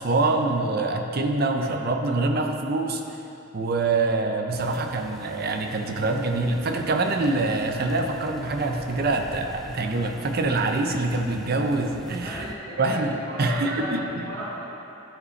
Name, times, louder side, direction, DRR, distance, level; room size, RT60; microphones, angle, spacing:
voice 1, 0.0-3.0 3.5-12.4 12.8-14.0, right 2 dB, 50° right, 4 dB, 0.6 m, -25 dB
sound 1, 4.5-12.6, equal, ahead, 0.3 m, -43 dB
voice 2, 12.2-14.6, equal, 70° right, -8 dB, 1.6 m, -35 dB
12.5 x 5.0 x 3.2 m, 2.9 s
head